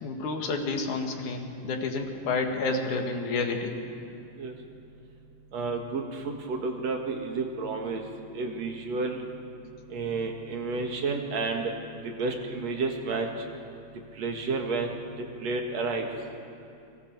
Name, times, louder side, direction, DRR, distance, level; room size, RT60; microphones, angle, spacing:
voice 1, 0.0-3.7, left 3 dB, 85° left, 3 dB, 3.4 m, -30 dB
voice 2, 5.5-8.0 8.3-9.2 9.9-11.7 12.0-13.3 14.2-15.0 15.4-16.1, right 3 dB, 65° right, 2 dB, 2.9 m, -31 dB
29.5 x 24.0 x 4.7 m, 2.5 s
omnidirectional pair, 3.4 m